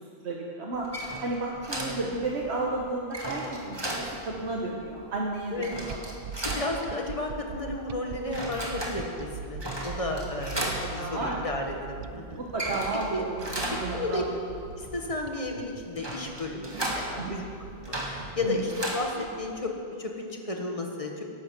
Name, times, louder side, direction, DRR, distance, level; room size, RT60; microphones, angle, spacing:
voice 1, 0.2-0.9 1.2-3.8 4.2-6.0 10.9-11.4 12.4-13.3 13.7-14.2 17.2-17.4 18.4-18.6, right 2 dB, 80° right, -2 dB, 1.5 m, -32 dB
sound 1, 0.7-19.7, right 1 dB, 25° right, 1.7 m, -37 dB
sound 2, 5.9-19.0, right 6 dB, 60° right, 0.7 m, -42 dB
voice 2, 6.3-12.4 13.1-13.2 13.9-14.2 14.8-17.5 17.8-18.0 18.3-19.7 20.0-21.2, left 2 dB, 30° left, 2 dB, 1.5 m, -33 dB
12.0 x 11.0 x 7.4 m, 2.4 s
omnidirectional pair, 1.1 m